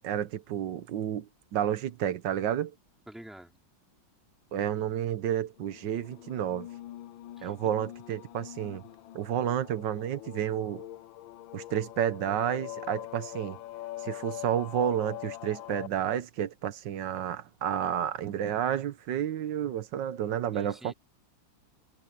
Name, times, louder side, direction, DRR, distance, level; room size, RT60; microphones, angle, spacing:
voice 1, 0.0-2.7 4.5-6.7 7.4-8.8 9.1-10.8 11.5-13.6 14.0-20.9, right 10 dB, 70° right, 1.5 m, -31 dB
voice 2, 3.1-3.6 7.4-7.5 20.5-20.9, right 1 dB, ahead, 3.8 m, -48 dB
sound 1, 5.6-15.9, left 14 dB, 90° left, 1.4 m, -43 dB
omnidirectional pair, 2.1 m